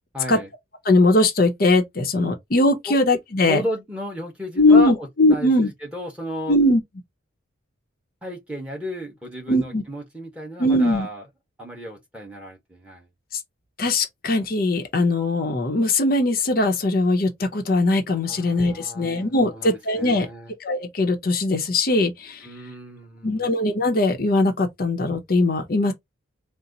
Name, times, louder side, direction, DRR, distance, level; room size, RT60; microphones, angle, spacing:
voice 1, 0.1-0.5 2.9-3.0 3.5-6.6 8.2-11.2 11.6-13.1 18.3-20.5 22.4-23.5, equal, 5° right, 1.1 m, -33 dB
voice 2, 0.9-3.6 4.6-5.7 6.5-6.8 9.5-9.8 10.6-11.1 13.3-13.4 13.8-20.3 20.6-22.5 23.2-25.9, left 2 dB, 45° left, 0.7 m, -20 dB
4.1 x 2.1 x 3.8 m
head